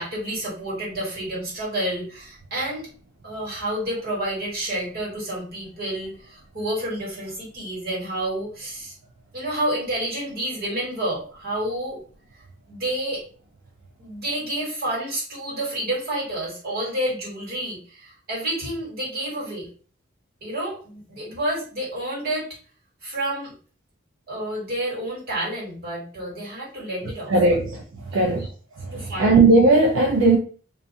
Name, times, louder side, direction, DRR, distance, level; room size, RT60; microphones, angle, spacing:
voice 1, 0.0-2.9 3.2-8.9 9.3-12.0 12.7-13.2 14.0-19.7 20.4-22.5 23.0-23.5 24.3-27.6 28.1-28.4 28.9-29.4, right 1 dB, 50° right, 1.5 m, -29 dB
voice 2, 27.3-28.5 28.8-30.4, right 2 dB, 85° right, 0.4 m, -18 dB
2.5 x 2.3 x 2.7 m
head